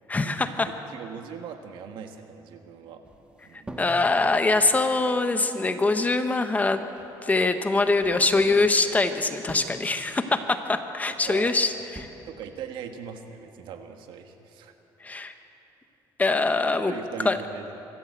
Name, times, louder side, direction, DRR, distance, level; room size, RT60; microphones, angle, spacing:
voice 1, 0.1-0.7 3.8-6.8 7.2-12.1 15.0-15.3 16.2-16.9 17.2-17.4, left 3 dB, 20° left, 8 dB, 1.2 m, -23 dB
voice 2, 0.9-3.0 3.4-3.8 4.6-4.7 11.1-11.5 12.2-14.7 16.9-17.8, right 7 dB, 80° right, 6 dB, 1.7 m, -40 dB
sound 1, 3.0-4.1 5.7-5.8 7.0-7.2 7.7-9.0 9.3-9.8 11.2-11.5 11.8-12.1, right 1 dB, 10° right, 1.7 m, -43 dB
25.0 x 13.0 x 8.1 m, 2.9 s
cardioid pair, 120°, 8 cm